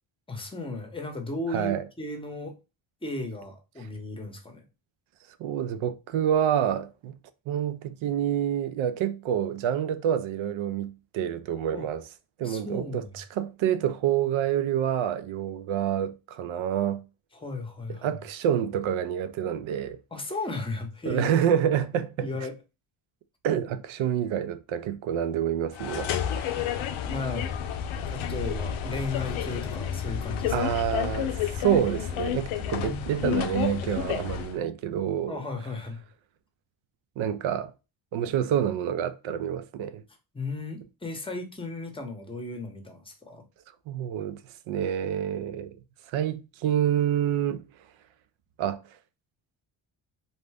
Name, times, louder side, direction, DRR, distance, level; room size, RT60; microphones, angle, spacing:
voice 1, 0.3-2.6 3.0-4.6 11.7-11.9 12.4-13.2 17.3-18.2 20.1-21.3 22.2-22.6 27.1-27.6 28.1-30.7 32.7-33.0 35.3-36.0 40.3-43.4, left 2 dB, 10° left, 0.8 m, -35 dB
voice 2, 1.5-1.9 5.4-7.1 7.5-12.0 12.4-17.0 18.0-20.0 21.1-22.4 23.4-26.4 30.5-35.4 37.2-37.7 38.1-40.0 43.9-44.4 44.7-45.8 46.1-47.6 48.6-48.8, right 9 dB, 75° right, 0.6 m, -27 dB
sound 1, 25.7-34.6, left 9 dB, 75° left, 0.6 m, -30 dB
2.7 x 2.2 x 3.3 m
cardioid pair, 85°, 49 cm